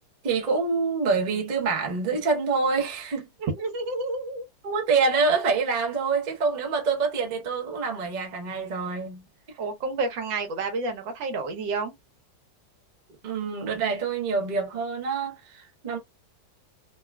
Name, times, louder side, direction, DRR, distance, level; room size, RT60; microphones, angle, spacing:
voice 1, 0.2-3.3 4.6-9.3 13.2-16.0, right 4 dB, 40° right, 0.6 m, -26 dB
voice 2, 3.4-4.4 9.6-11.9, right 3 dB, 85° right, 1.5 m, -30 dB
3.6 x 2.3 x 2.2 m
omnidirectional pair, 2.0 m